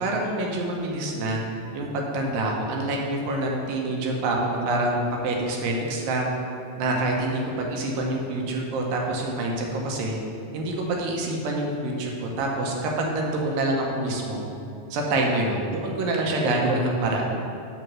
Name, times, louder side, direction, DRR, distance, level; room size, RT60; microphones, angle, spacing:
voice 1, 0.0-1.4 1.7-6.3 6.8-10.1 10.5-14.4 14.9-17.2, right 2 dB, 85° right, 0 dB, 2.7 m, -26 dB
6.2 x 5.2 x 6.0 m, 2.7 s
omnidirectional pair, 3.9 m